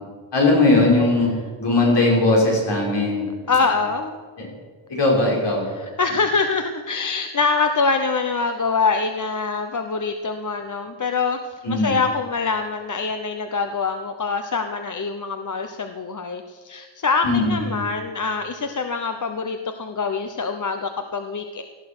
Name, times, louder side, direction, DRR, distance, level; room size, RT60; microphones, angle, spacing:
voice 1, 0.3-1.3 1.6-3.3 4.4-4.5 4.9-5.6 11.6-11.9 17.2-17.9, left 2 dB, 55° left, -3 dB, 5.7 m, -19 dB
voice 2, 3.5-4.2 5.7-21.6, left 4 dB, 40° left, 6 dB, 0.9 m, -24 dB
18.0 x 13.0 x 6.1 m, 1.5 s
wide cardioid pair, 165°, 49 cm